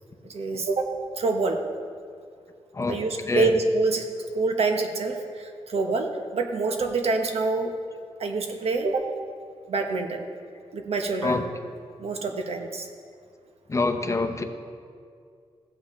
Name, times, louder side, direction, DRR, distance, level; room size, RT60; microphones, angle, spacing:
voice 1, 0.2-1.6 2.9-4.0 4.3-7.7 8.2-9.1 9.7-10.2 10.7-11.5 12.0-12.9, right 3 dB, 70° right, 4 dB, 1.1 m, -26 dB
voice 2, 13.7-14.4, left 3 dB, 30° left, 6 dB, 0.7 m, -25 dB
15.5 x 8.0 x 3.2 m, 2.2 s
wide cardioid pair, 100°, 11 cm